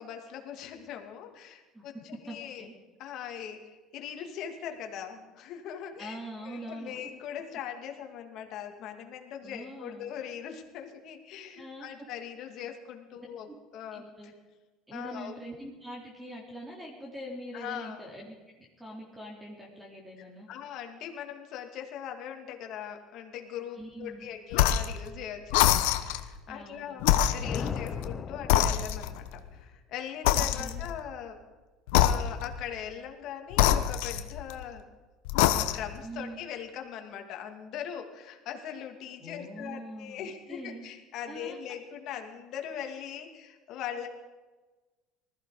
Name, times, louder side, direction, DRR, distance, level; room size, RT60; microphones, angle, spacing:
voice 1, 0.0-2.7 3.0-13.5 13.7-14.3 14.9-15.3 17.5-18.0 20.5-31.4 31.9-34.8 35.3-44.1, left 9 dB, 55° left, 4 dB, 2.4 m, -40 dB
voice 2, 2.3-2.7 6.0-7.1 9.4-10.1 11.6-11.9 13.5-13.6 13.9-14.3 14.9-20.5 23.8-24.3 26.5-26.9 30.3-30.8 36.0-36.4 39.2-40.9 41.3-41.6, right 1 dB, 10° right, -1 dB, 3.2 m, -43 dB
sound 1, 24.5-25.0 25.5-26.3 27.0-28.1 28.5-29.3 30.2-31.0 31.9-32.6 33.5-34.6 35.2-36.0, left 12 dB, 85° left, 1.0 m, -25 dB
sound 2, 27.4-29.4, left 6 dB, 30° left, 0.8 m, -37 dB
20.0 x 14.5 x 5.0 m, 1.2 s
cardioid pair, 125°, 0 cm